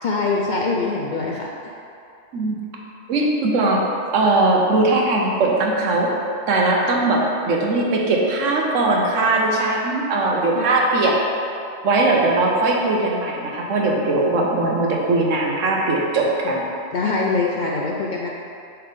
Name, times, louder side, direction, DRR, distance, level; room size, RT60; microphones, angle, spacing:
voice 1, 0.0-1.5 8.8-8.9 10.6-10.8 12.1-12.2 16.9-18.3, left 3 dB, 60° left, -2 dB, 0.5 m, -23 dB
voice 2, 3.1-3.8 4.1-6.1 6.5-11.2 11.8-16.7, right 2 dB, 85° right, -1 dB, 1.2 m, -20 dB
5.9 x 3.5 x 5.1 m, 2.6 s
omnidirectional pair, 1.3 m